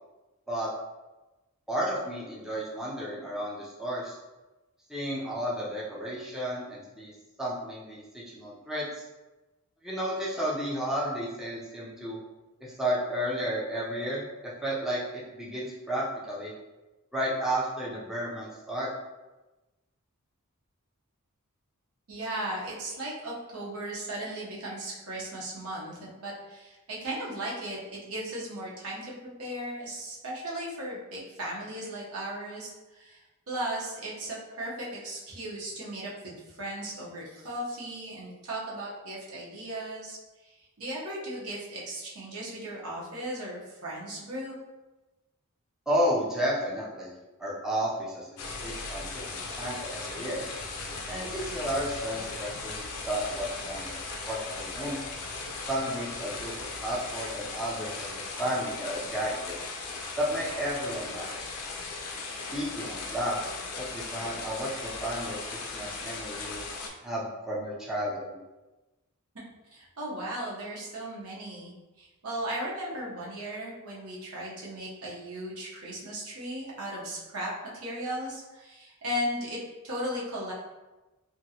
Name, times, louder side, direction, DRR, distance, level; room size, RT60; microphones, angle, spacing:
voice 1, 1.7-4.2 4.9-7.1 7.4-9.0 9.8-12.2 12.6-16.5 17.1-18.9 45.9-47.1 47.4-48.3 48.6-50.4 51.1-53.9 54.2-55.0 55.7-59.6 60.2-61.3 62.5-63.4 63.7-66.6 67.0-68.4, equal, ahead, -7 dB, 0.5 m, -32 dB
voice 2, 22.1-29.1 29.4-44.6 69.7-79.6 79.8-80.5, right 1 dB, 70° right, -5 dB, 0.9 m, -36 dB
sound 1, 48.4-66.9, left 3 dB, 90° left, 0.5 m, -38 dB
2.9 x 2.6 x 2.8 m, 1.1 s
head